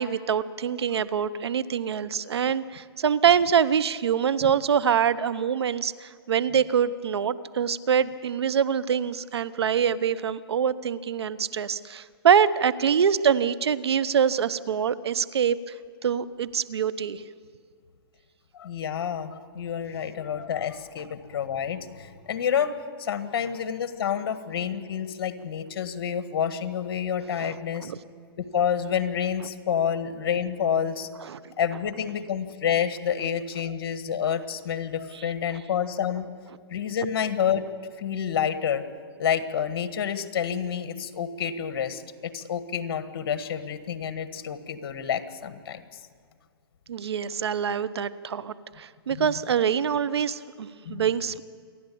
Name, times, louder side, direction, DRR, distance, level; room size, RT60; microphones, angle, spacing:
voice 1, 0.0-15.6 16.0-17.2 27.4-28.0 31.2-31.5 46.9-51.4, right 8 dB, 85° right, 16 dB, 0.9 m, -25 dB
voice 2, 18.5-22.7 23.0-27.9 28.4-31.1 31.6-36.3 36.7-37.6 38.0-38.8 39.2-46.0 49.1-49.3 50.8-51.0, left 8 dB, 60° left, 10 dB, 1.7 m, -28 dB
27.5 x 11.0 x 8.6 m, 2.1 s
hypercardioid pair, 140°, 13 cm